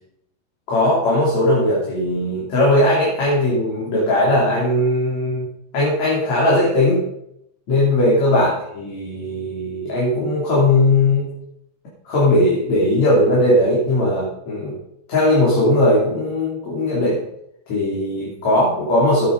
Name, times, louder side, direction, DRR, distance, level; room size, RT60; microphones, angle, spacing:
voice 1, 0.7-5.5 5.7-7.0 7.7-11.3 12.1-14.7 15.1-17.2 17.7-19.3, left 1 dB, 60° left, -6 dB, 4.5 m, -18 dB
13.0 x 9.7 x 5.3 m, 0.79 s
omnidirectional pair, 3.7 m